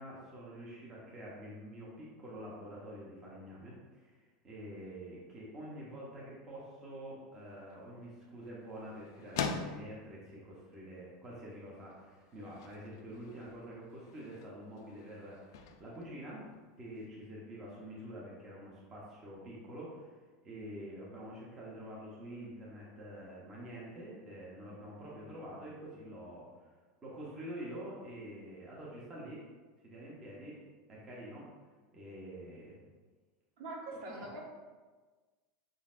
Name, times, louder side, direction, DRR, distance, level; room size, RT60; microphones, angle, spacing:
voice 1, 0.0-4.2 4.4-16.5 16.8-20.1 20.4-26.7 27.0-29.4 29.8-30.6 30.9-31.5 31.9-32.8, equal, 20° right, -5 dB, 0.7 m, -47 dB
sound 1, 7.3-17.1, left 5 dB, 90° left, 0.4 m, -45 dB
voice 2, 33.6-34.4, right 2 dB, 60° right, -1 dB, 0.9 m, -43 dB
5.0 x 3.8 x 2.4 m, 1.3 s
supercardioid pair, 180°, 2 cm